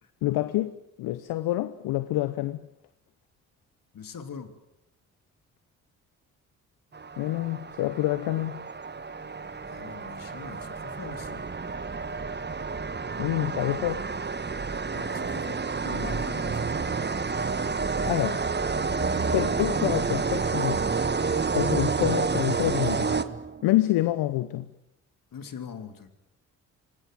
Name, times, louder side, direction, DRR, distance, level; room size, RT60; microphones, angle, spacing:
voice 1, 0.2-2.6 7.2-8.7 13.2-14.1 18.1-18.4 19.3-20.8 21.5-23.1 23.6-24.7, left 15 dB, 70° left, 1.0 m, -27 dB
voice 2, 3.9-4.5 9.7-11.5 14.9-17.0 21.6-21.8 25.3-26.1, left 7 dB, 55° left, 3.2 m, -42 dB
sound 1, 6.9-23.7, right 4 dB, 25° right, 1.5 m, -29 dB
26.0 x 20.0 x 9.2 m
hypercardioid pair, 45°, 40 cm